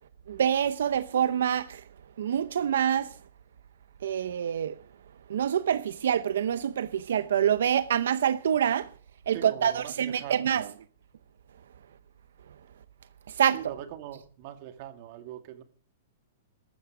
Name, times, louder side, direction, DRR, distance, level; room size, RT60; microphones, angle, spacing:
voice 1, 0.3-1.8 2.2-3.1 4.0-4.8 5.3-8.9 9.3-10.7 13.3-13.6, right 9 dB, 85° right, 0.7 m, -26 dB
voice 2, 9.3-10.6 13.5-15.6, right 11 dB, 45° right, 2.3 m, -42 dB
14.5 x 12.5 x 5.0 m
hypercardioid pair, 155°, 0 cm